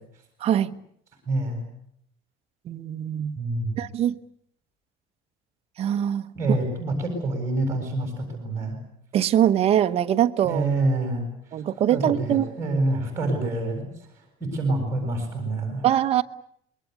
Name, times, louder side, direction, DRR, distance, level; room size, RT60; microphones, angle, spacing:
voice 1, 0.4-0.7 2.7-3.4 3.8-4.1 5.8-6.3 9.1-10.6 11.5-12.5 15.8-16.2, right 11 dB, 40° right, 9 dB, 1.0 m, -22 dB
voice 2, 1.3-1.6 3.4-3.8 6.3-8.8 10.4-11.3 11.9-15.8, right 2 dB, 15° right, 3 dB, 7.7 m, -27 dB
27.0 x 22.0 x 8.2 m, 0.71 s
cardioid pair, 170°, 16 cm